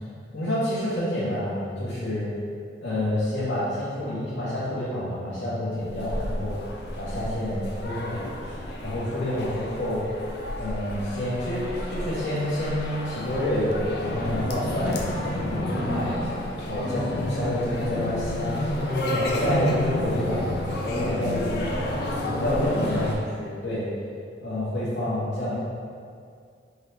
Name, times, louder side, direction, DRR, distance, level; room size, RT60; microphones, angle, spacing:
voice 1, 0.3-2.3 2.8-6.6 6.9-8.6 8.8-10.0 10.6-11.6 11.9-16.2 16.6-18.6 19.1-21.7 22.2-23.9 24.4-25.5, left 1 dB, 90° left, -12 dB, 1.0 m, -28 dB
sound 1, 5.8-23.2, left 1 dB, 60° left, 0.5 m, -30 dB
3.9 x 2.9 x 3.3 m, 2.3 s
head